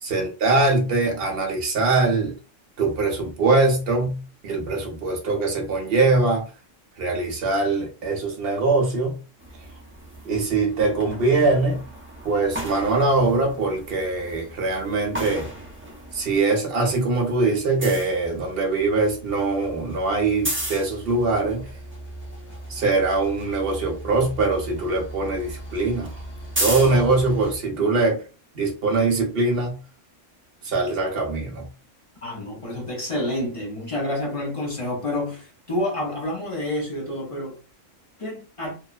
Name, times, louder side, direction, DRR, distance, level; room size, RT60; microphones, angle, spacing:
voice 1, 0.0-2.4 2.8-6.5 7.0-9.2 10.2-11.8 12.2-15.5 16.1-21.7 22.7-26.2 26.6-28.2 28.5-29.8 30.6-31.7, right 3 dB, 55° right, 0.9 m, -22 dB
sound 1, 9.4-16.4 16.7-27.6, right 1 dB, 20° right, 0.4 m, -35 dB
voice 2, 32.2-37.6 38.2-38.8, left 1 dB, 40° left, 0.5 m, -29 dB
2.8 x 2.0 x 2.3 m
omnidirectional pair, 1.3 m